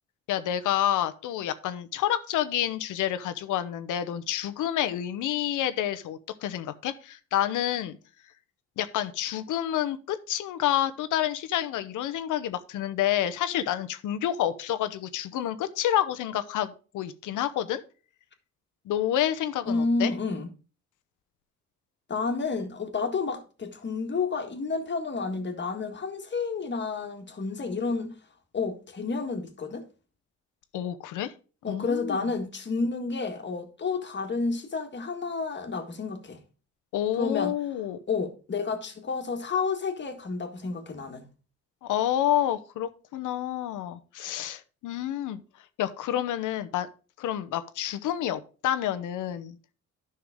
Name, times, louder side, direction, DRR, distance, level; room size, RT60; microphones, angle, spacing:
voice 1, 0.3-8.0 8.8-17.8 18.9-20.1 30.7-31.3 31.7-32.3 36.9-38.0 41.8-45.4 45.8-46.9 47.2-49.6, left 11 dB, 80° left, 0.9 m, -29 dB
voice 2, 19.6-20.5 22.1-28.1 28.5-29.8 31.6-36.4 37.2-37.6 38.1-41.3, left 4 dB, 35° left, 1.7 m, -30 dB
10.5 x 5.9 x 3.6 m
cardioid pair, 90°, 30 cm